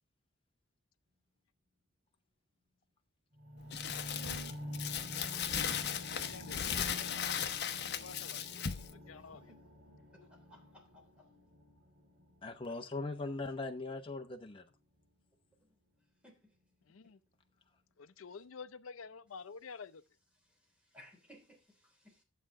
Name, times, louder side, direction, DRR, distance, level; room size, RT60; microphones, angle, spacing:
sound 1, 3.3-13.5 14.1-14.2, left 1 dB, 45° right, 4.4 m, -48 dB
Crumpling crinkling, 3.7-8.9, left 8 dB, 55° left, 0.9 m, -37 dB
voice 1, 6.1-7.4 7.8-8.6 8.9-9.5 10.2-10.3 16.9-17.2 18.0-20.0, left 5 dB, 85° left, 0.6 m, -50 dB
voice 2, 10.1-11.0 12.7-12.8 16.2-16.4 20.9-22.2, equal, 5° right, 3.3 m, -59 dB
voice 3, 12.4-14.6, left 3 dB, 25° left, 0.9 m, -40 dB
11.0 x 7.7 x 3.7 m
head